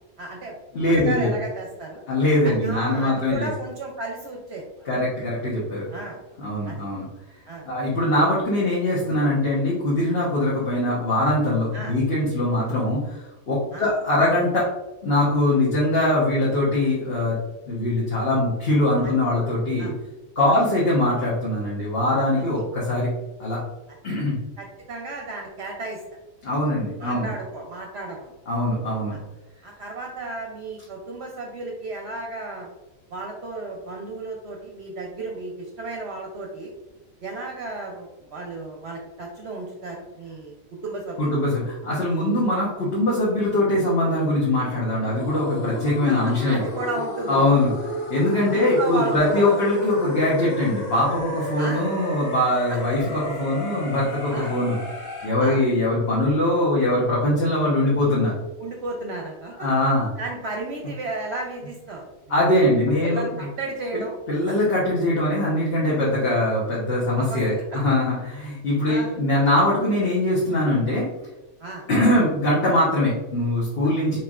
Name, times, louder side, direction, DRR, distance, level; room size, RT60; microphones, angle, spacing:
voice 1, 0.2-2.0 2.4-4.9 5.9-6.2 6.6-6.8 7.5-7.7 11.7-11.9 13.7-13.9 19.0-19.2 19.8-19.9 20.4-20.6 24.6-26.0 27.0-28.3 29.1-29.2 29.6-32.7 33.1-36.7 37.2-40.6 40.8-41.3 46.1-47.6 48.4-49.6 51.6-51.8 52.5-52.8 54.3-54.6 55.4-55.6 58.6-59.7 60.2-62.4 63.0-64.1 67.1-67.4 67.7-67.8 68.9-69.2 71.6-71.9, right 2 dB, 60° right, 0 dB, 0.8 m, -33 dB
voice 2, 0.7-1.3 2.1-3.5 4.8-5.9 6.4-7.1 7.6-13.2 13.5-14.7 15.0-17.4 17.7-19.9 20.4-23.1 23.4-23.6 24.0-24.3 26.4-27.3 28.5-29.2 41.2-46.6 47.3-47.7 48.1-54.8 55.2-58.4 59.6-60.1 62.3-63.5 63.9-64.0 64.3-71.1 71.9-74.2, left 1 dB, 50° left, -6 dB, 1.2 m, -22 dB
sound 1, 45.2-55.3, left 1 dB, 65° left, 1.8 m, -33 dB
4.5 x 4.2 x 2.4 m, 1.0 s
omnidirectional pair, 1.4 m